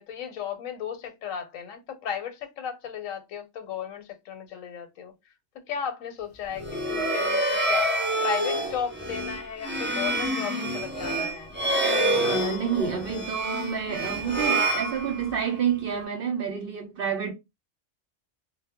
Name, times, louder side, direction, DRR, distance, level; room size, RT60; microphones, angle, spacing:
voice 1, 0.0-5.1 5.7-7.9 8.2-11.5, left 7 dB, 90° left, 1.0 m, -35 dB
sound 1, 6.5-15.6, right 1 dB, 20° right, 0.3 m, -27 dB
voice 2, 12.2-17.3, right 7 dB, 60° right, 0.6 m, -29 dB
2.1 x 2.0 x 3.4 m
omnidirectional pair, 1.3 m